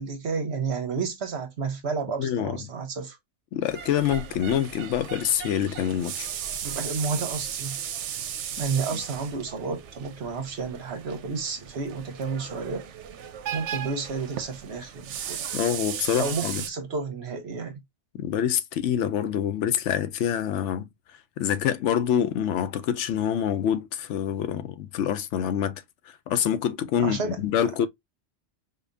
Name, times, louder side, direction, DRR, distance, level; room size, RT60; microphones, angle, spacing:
voice 1, 0.0-3.2 6.6-7.8 8.6-12.9 13.5-15.5 16.1-17.8 27.0-27.4, right 4 dB, 70° right, 1.1 m, -31 dB
voice 2, 2.2-2.6 3.5-6.3 8.9-9.0 15.5-16.6 18.1-20.9 21.4-25.8 26.3-27.9, left 9 dB, 85° left, 0.9 m, -26 dB
sound 1, 3.6-16.7, right 9 dB, 85° right, 0.9 m, -36 dB
5.2 x 2.2 x 2.5 m
omnidirectional pair, 1.2 m